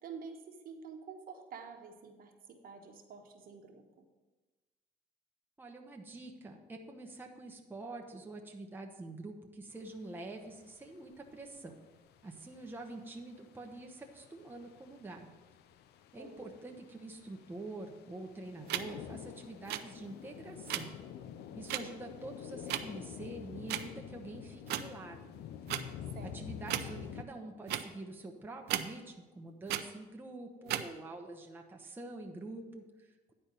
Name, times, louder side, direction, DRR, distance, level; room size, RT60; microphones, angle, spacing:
voice 1, 0.0-4.1 16.2-16.5 26.1-26.4, right 5 dB, 60° right, 3 dB, 1.3 m, -49 dB
voice 2, 5.6-11.8 12.2-15.3 16.1-20.9 21.6-25.3 26.2-33.3, right 2 dB, 10° right, 1 dB, 0.9 m, -46 dB
sound 1, 9.7-27.2, left 9 dB, 75° left, 0.6 m, -49 dB
sound 2, 18.7-18.8 19.6-19.8 20.7-20.8 21.7-21.8 22.7-22.8 23.7-23.9 24.7-24.8 25.7-25.8 26.7-26.9 27.7-27.8 28.7-28.8 29.7-29.8 30.7-30.8, right 13 dB, 80° right, 0.6 m, -34 dB
10.0 x 4.4 x 6.7 m, 1.2 s
cardioid pair, 110°, 17 cm